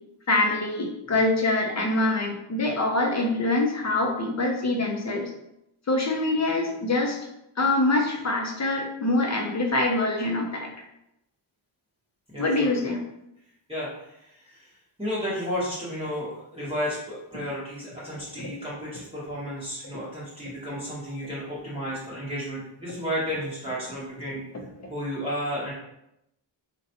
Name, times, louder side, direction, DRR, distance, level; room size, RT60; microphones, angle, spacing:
voice 1, 0.3-5.3 5.9-7.3 7.6-10.7 12.4-13.0 18.4-18.5 24.5-24.9, left 2 dB, 35° left, 2 dB, 0.6 m, -25 dB
voice 2, 12.3-12.9 13.7-13.9 14.5-14.6 15.0-24.4 24.9-25.7, equal, 10° right, -10 dB, 1.0 m, -32 dB
3.8 x 2.2 x 2.7 m, 0.83 s
wide cardioid pair, 95°, 47 cm